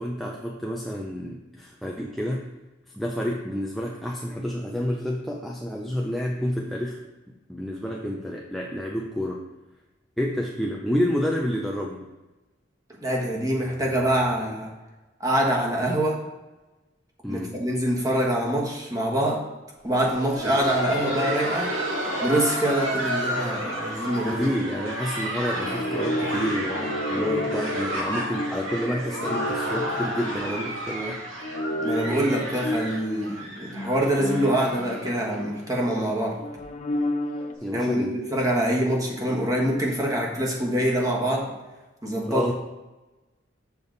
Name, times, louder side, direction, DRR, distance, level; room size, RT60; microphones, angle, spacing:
voice 1, 0.0-2.4 2.9-9.4 10.2-12.1 17.2-17.5 20.5-20.6 24.3-31.2 37.6-38.2 38.6-38.7 42.3-42.5, equal, ahead, -2 dB, 0.5 m, -29 dB
voice 2, 13.0-14.7 15.2-16.2 17.3-19.5 19.8-21.8 22.2-24.5 31.8-36.4 37.7-41.5 42.0-42.5, right 1 dB, 20° right, -2 dB, 1.4 m, -25 dB
Laughter, 19.9-35.6 35.9-36.0 36.6-36.7 37.2-37.4 38.5-38.6, right 1 dB, 85° right, 2.1 m, -31 dB
sound 1, 25.5-31.0 31.4-36.0 36.4-37.6, left 1 dB, 35° left, 0.7 m, -32 dB
7.0 x 6.7 x 4.0 m, 1.1 s
head